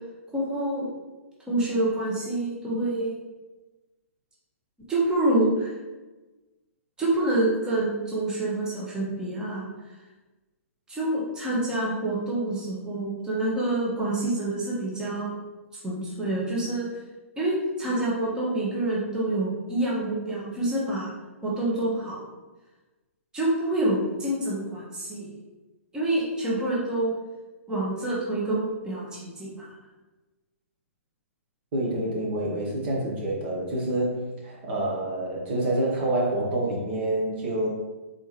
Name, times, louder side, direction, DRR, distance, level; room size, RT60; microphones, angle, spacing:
voice 1, 0.3-0.9 1.5-3.2 4.9-5.8 7.0-9.7 10.9-15.4 15.7-16.9 17.4-21.1 21.4-22.2 23.3-25.3 25.9-27.1 27.7-29.7, right 1 dB, 10° right, -6 dB, 1.1 m, -27 dB
voice 2, 31.7-37.7, right 1 dB, 45° right, -3 dB, 1.2 m, -27 dB
4.1 x 3.5 x 3.1 m, 1.2 s
figure-of-eight pair, 120°, 8 cm